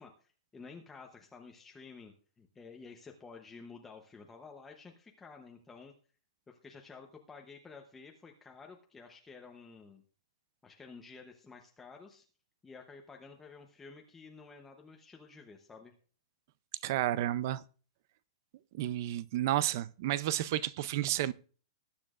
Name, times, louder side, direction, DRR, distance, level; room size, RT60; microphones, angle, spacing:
voice 1, 0.0-5.9 6.5-10.0 10.6-12.2 12.6-15.9, left 4 dB, 5° left, 0.8 m, -52 dB
voice 2, 16.8-17.6 18.7-21.3, right 13 dB, 35° right, 0.5 m, -31 dB
20.0 x 9.9 x 2.4 m
hypercardioid pair, 175°, 3 cm